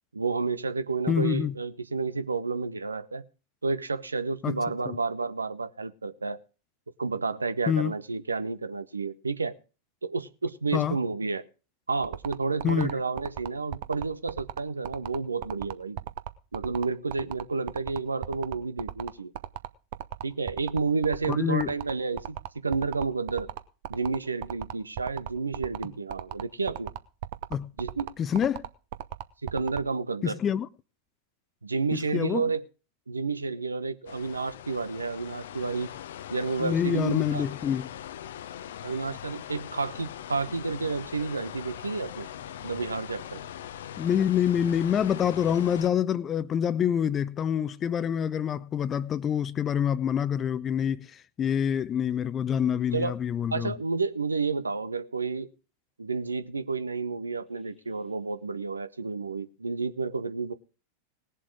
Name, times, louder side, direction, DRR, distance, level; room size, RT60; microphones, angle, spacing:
voice 1, 0.1-3.2 3.6-6.4 7.0-9.5 10.0-11.4 11.9-16.0 16.5-19.3 20.2-23.5 23.9-26.9 27.8-28.1 29.4-30.4 31.6-32.6 33.1-35.9 36.3-37.5 38.8-42.3 42.6-43.4 52.9-53.2 53.5-55.5 56.0-60.5, right 4 dB, 75° right, 1.0 m, -30 dB
voice 2, 1.1-1.5 4.4-4.6 4.9-5.0 7.7-7.9 10.7-11.0 12.6-12.9 21.3-21.7 27.5-27.7 28.2-28.7 30.2-30.7 31.9-32.4 36.6-37.9 44.0-51.1 51.4-53.7, left 8 dB, 25° left, 0.8 m, -26 dB
sound 1, 12.0-29.8, right 13 dB, 50° right, 1.0 m, -35 dB
sound 2, 34.1-45.9, left 10 dB, 60° left, 0.8 m, -41 dB
19.5 x 7.5 x 4.7 m
figure-of-eight pair, 90°, 0 cm